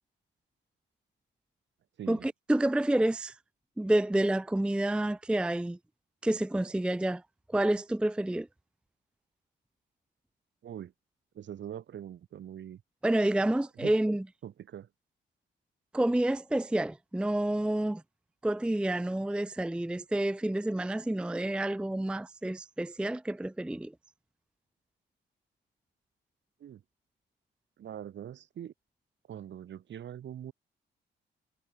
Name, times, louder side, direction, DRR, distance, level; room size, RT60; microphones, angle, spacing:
voice 1, 2.1-3.4 3.8-5.8 6.2-7.2 7.5-8.5 13.0-14.2 15.9-18.0 18.4-23.9, right 1 dB, 5° right, 0.5 m, -29 dB
voice 2, 11.3-12.8 13.8-14.0 14.4-14.9 26.6-26.8 27.8-28.7 29.3-30.5, right 10 dB, 65° right, 7.5 m, -42 dB
cardioid pair, 90°, 20 cm